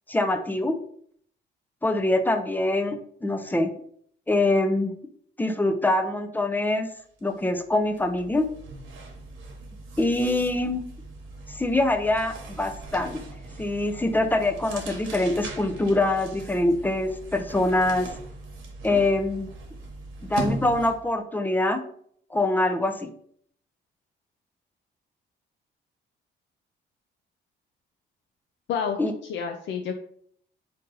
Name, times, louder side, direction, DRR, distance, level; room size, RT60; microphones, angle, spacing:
voice 1, 0.1-0.7 1.8-3.7 4.3-4.9 5.4-6.9 7.2-8.5 10.0-10.8 11.5-13.2 13.6-18.1 18.8-19.5 20.3-21.8 22.3-23.1 29.0-29.1, left 2 dB, 10° left, 7 dB, 0.5 m, -24 dB
sound 1, 7.2-7.4 7.7-21.1, right 2 dB, 85° right, 1.0 m, -39 dB
voice 2, 28.7-30.0, left 7 dB, 70° left, 4 dB, 0.4 m, -30 dB
4.1 x 2.7 x 3.8 m, 0.63 s
cardioid pair, 90°, 20 cm